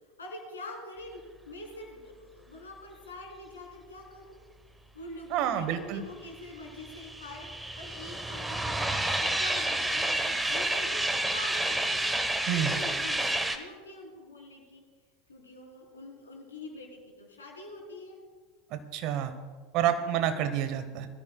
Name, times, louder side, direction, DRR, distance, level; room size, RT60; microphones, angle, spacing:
voice 1, 0.2-4.3 4.9-12.1 12.5-14.8 15.3-18.2, left 2 dB, 80° left, 0 dB, 3.3 m, -45 dB
voice 2, 5.3-6.0 12.5-12.7 18.7-19.3 19.7-21.1, right 10 dB, 50° right, 10 dB, 1.2 m, -29 dB
sound 1, 6.4-13.6, right 1 dB, 10° right, 1.1 m, -30 dB
21.0 x 13.5 x 2.3 m, 1.5 s
figure-of-eight pair, 80°, 0 cm